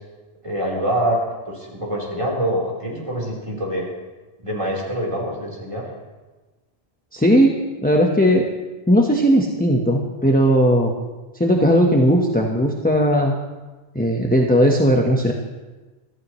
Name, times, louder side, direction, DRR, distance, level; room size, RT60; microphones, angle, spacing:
voice 1, 0.4-1.2 1.5-3.9 4.4-5.9, right 1 dB, 30° right, -4 dB, 4.2 m, -25 dB
voice 2, 7.1-7.5 7.8-8.4 8.9-10.9 11.4-13.3 13.9-15.3, equal, 10° left, 0 dB, 1.1 m, -17 dB
25.0 x 14.0 x 3.2 m, 1.2 s
omnidirectional pair, 1.1 m